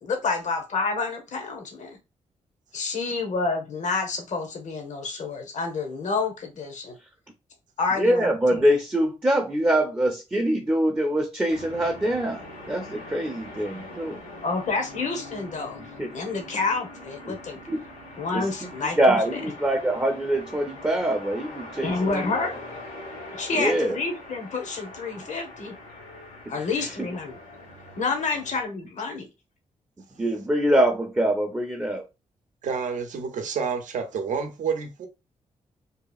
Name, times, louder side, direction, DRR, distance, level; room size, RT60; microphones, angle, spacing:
voice 1, 0.0-2.0 2.7-7.0 7.8-8.6 14.4-15.8 16.1-17.6 18.2-19.0 19.3-19.4 21.8-22.6 23.3-25.7 26.5-27.4 28.0-29.3, left 4 dB, 65° left, 0.8 m, -29 dB
voice 2, 8.0-14.2 16.0-16.1 17.7-17.8 18.3-18.7 19.0-22.4 23.5-24.0 26.8-26.9 30.2-32.0, right 1 dB, 15° right, 0.6 m, -24 dB
sound 1, 11.5-28.6, left 1 dB, 80° left, 1.2 m, -42 dB
voice 3, 32.6-35.1, right 6 dB, 65° right, 0.6 m, -29 dB
2.8 x 2.4 x 2.3 m
cardioid pair, 65°, 13 cm